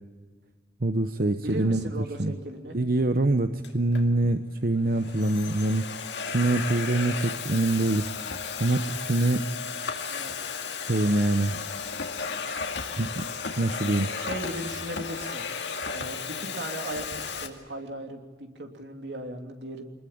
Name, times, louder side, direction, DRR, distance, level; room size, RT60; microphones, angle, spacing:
voice 1, 0.8-1.8 2.2-2.3 2.7-5.9 6.3-8.1 8.6-9.4 10.8-11.6 13.0-13.2 13.6-14.1, right 2 dB, 55° right, 9 dB, 0.9 m, -24 dB
voice 2, 1.4-2.8 10.1-10.3 14.1-15.5 15.9-19.9, right 1 dB, 75° right, 4 dB, 3.2 m, -37 dB
Domestic sounds home sounds, 3.6-4.0 4.8-17.5, left 5 dB, 85° left, 2.3 m, -34 dB
24.5 x 20.5 x 8.7 m, 1.4 s
head